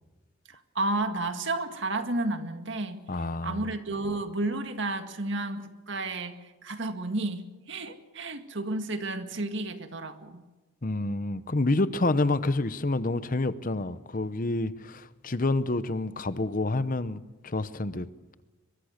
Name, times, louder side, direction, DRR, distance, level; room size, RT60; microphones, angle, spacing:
voice 1, 0.5-10.4, right 2 dB, 60° right, 2.0 m, -32 dB
voice 2, 3.1-3.7 10.8-18.1, left 2 dB, 40° left, 0.9 m, -28 dB
23.0 x 22.5 x 6.6 m
head